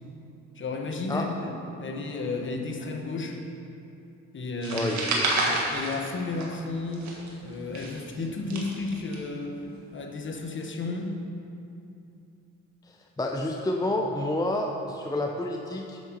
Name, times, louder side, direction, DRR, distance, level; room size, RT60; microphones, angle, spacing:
voice 1, 0.5-3.4 4.3-5.0 5.5-7.1 7.4-9.6 9.9-11.2, left 3 dB, 40° left, 3 dB, 1.1 m, -33 dB
sound 1, 4.6-6.7 6.9-9.1, right 2 dB, 65° right, 1.7 m, -29 dB
voice 2, 4.7-5.3 12.9-16.0, left 1 dB, 15° left, 2 dB, 0.6 m, -29 dB
7.9 x 7.4 x 5.3 m, 2.7 s
cardioid pair, 90°, 30 cm